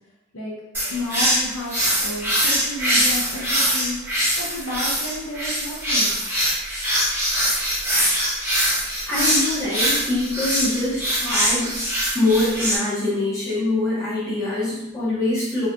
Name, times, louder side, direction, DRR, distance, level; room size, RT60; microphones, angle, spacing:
sound 1, 0.7-12.8, equal, 10° right, 0.9 m, -23 dB
voice 1, 0.9-1.7 2.0-4.0 4.4-6.2, left 1 dB, 65° left, -3 dB, 0.7 m, -31 dB
voice 2, 9.1-11.7 12.1-15.7, left 2 dB, 15° left, -9 dB, 1.2 m, -24 dB
3.3 x 3.0 x 2.5 m, 0.93 s
head